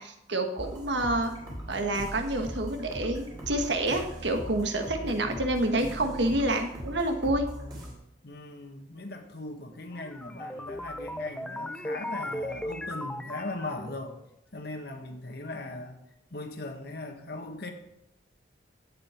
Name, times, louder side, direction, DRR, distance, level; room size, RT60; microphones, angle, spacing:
voice 1, 0.0-1.3 1.7-7.4, right 1 dB, 65° right, 5 dB, 1.5 m, -28 dB
sound 1, 0.6-7.9, equal, 20° right, 3.5 m, -40 dB
voice 2, 5.0-5.4 8.2-14.2 14.5-16.0 16.3-17.7, left 2 dB, 55° left, 4 dB, 1.4 m, -39 dB
sound 2, 9.9-14.1, left 1 dB, 5° left, 0.3 m, -37 dB
16.0 x 7.8 x 4.4 m, 0.82 s
head